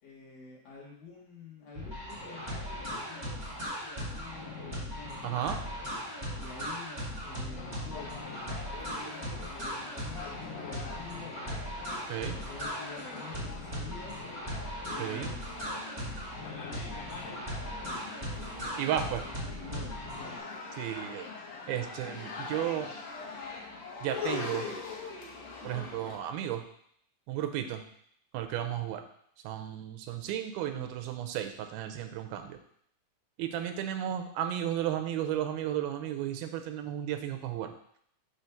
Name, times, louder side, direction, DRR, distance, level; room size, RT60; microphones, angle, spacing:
voice 1, 0.0-5.4 6.4-11.7 12.2-14.3 14.9-16.0 17.8-18.9 19.6-20.5, left 5 dB, 60° left, -5 dB, 3.2 m, -49 dB
sound 1, 1.7-20.4, equal, 30° right, 0.4 m, -38 dB
voice 2, 5.2-5.6 12.1-12.4 15.0-15.3 18.8-19.2 20.8-21.3 21.7-22.9 24.0-24.7 25.6-26.7 27.3-27.8 28.3-29.0 29.4-32.6 33.4-37.7, right 11 dB, 85° right, 6 dB, 2.5 m, -33 dB
sound 2, 7.6-26.2, left 4 dB, 75° left, 2.8 m, -43 dB
7.5 x 3.2 x 5.7 m, 0.67 s
omnidirectional pair, 4.2 m